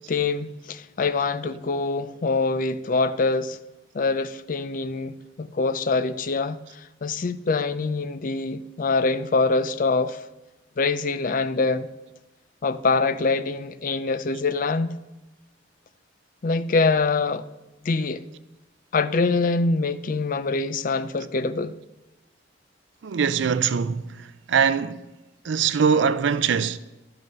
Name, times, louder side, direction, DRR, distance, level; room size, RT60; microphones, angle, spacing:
voice 1, 0.1-3.6 3.9-10.2 10.8-11.9 12.6-15.0 16.4-17.5 17.8-18.2 18.9-21.8, left 3 dB, 45° left, 0.4 m, -24 dB
voice 2, 23.0-25.0 25.4-26.8, right 6 dB, 75° right, 0.4 m, -22 dB
10.5 x 5.4 x 6.7 m
head